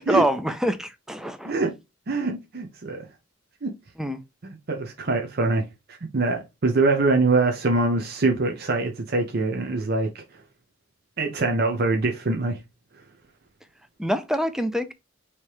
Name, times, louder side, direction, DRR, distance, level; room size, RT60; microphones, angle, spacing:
voice 1, 0.0-1.5 4.0-4.2 14.0-14.9, equal, 5° right, 0.4 m, -25 dB
voice 2, 2.1-3.1 3.6-3.7 4.4-10.2 11.2-12.6, right 3 dB, 55° right, 0.7 m, -24 dB
3.3 x 2.9 x 4.6 m
head